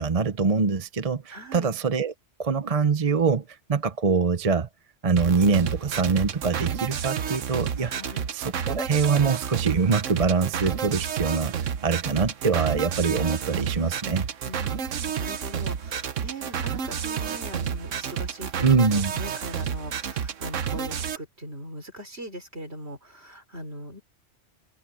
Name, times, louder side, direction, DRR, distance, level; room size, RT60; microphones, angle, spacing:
voice 1, 0.0-2.1 2.4-4.7 5.0-7.9 8.3-14.3 18.6-19.1, right 5 dB, 35° right, 0.8 m, -24 dB
voice 2, 1.3-1.7 7.8-8.2 14.4-24.0, equal, 55° right, 5.7 m, -40 dB
sound 1, 5.2-21.2, right 8 dB, 80° right, 1.4 m, -30 dB
open air
omnidirectional pair, 1.3 m